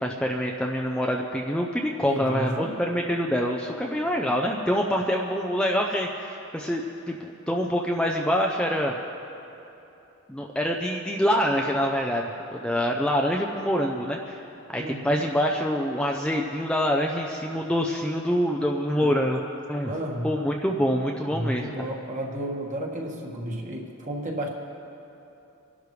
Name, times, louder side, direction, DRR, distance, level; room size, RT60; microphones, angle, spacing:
voice 1, 0.0-9.0 10.3-14.4 14.7-19.4 19.7-19.9 20.2-21.7, equal, 5° left, 0 dB, 0.5 m, -26 dB
voice 2, 2.0-2.7 14.8-15.2 18.9-19.3 19.8-20.4 21.2-24.5, right 1 dB, 35° right, 0 dB, 1.5 m, -32 dB
25.5 x 11.5 x 3.3 m, 2.9 s
head